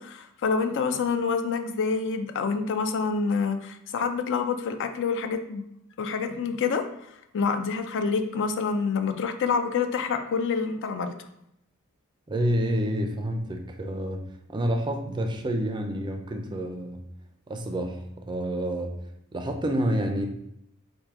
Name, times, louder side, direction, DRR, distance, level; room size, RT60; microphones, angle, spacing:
voice 1, 0.0-5.6 6.0-6.8 7.3-11.1, left 5 dB, 55° left, 7 dB, 0.4 m, -27 dB
voice 2, 12.3-14.2 14.5-17.0 17.5-19.0 19.3-20.3, equal, 20° right, 5 dB, 0.4 m, -28 dB
4.8 x 2.6 x 3.6 m, 0.77 s
head